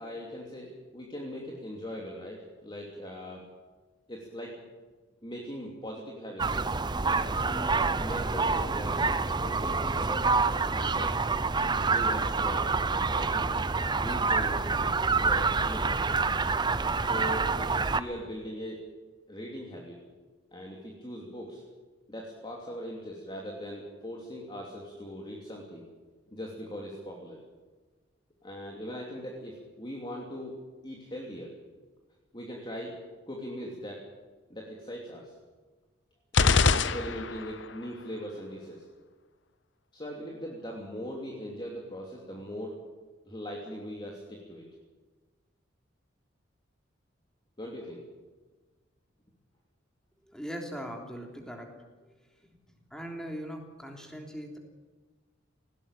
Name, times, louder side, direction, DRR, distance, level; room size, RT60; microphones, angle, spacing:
voice 1, 0.0-3.5 4.1-4.6 5.2-6.6 7.0-11.2 11.7-13.5 14.0-16.1 17.0-18.8 19.3-20.0 20.5-21.6 22.1-25.9 26.3-27.4 28.4-30.6 30.8-31.5 32.3-33.0 33.3-34.0 34.5-35.3 36.3-38.9 39.9-42.8 43.3-44.7 47.6-48.0, equal, 25° left, -1 dB, 2.9 m, -40 dB
sound 1, 6.4-18.0, right 4 dB, 20° right, 0.7 m, -27 dB
sound 2, 36.3-37.6, left 4 dB, 65° left, 0.8 m, -24 dB
voice 2, 50.2-51.7 52.0-52.2 52.7-54.6, equal, 5° left, 2 dB, 3.4 m, -40 dB
19.0 x 17.0 x 9.0 m, 1.3 s
head